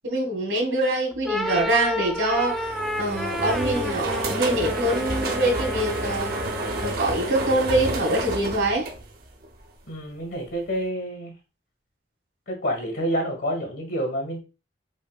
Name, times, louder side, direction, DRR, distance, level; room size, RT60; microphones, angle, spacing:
voice 1, 0.0-2.7 3.0-6.3 6.8-8.9, right 1 dB, 75° right, 1.3 m, -24 dB
sound 1, 1.1-7.1, equal, ahead, 0.3 m, -32 dB
sound 2, 2.3-9.6, right 1 dB, 55° right, 0.6 m, -30 dB
voice 2, 9.9-11.3 12.5-14.4, equal, 85° left, 1.7 m, -28 dB
5.2 x 2.1 x 2.4 m
head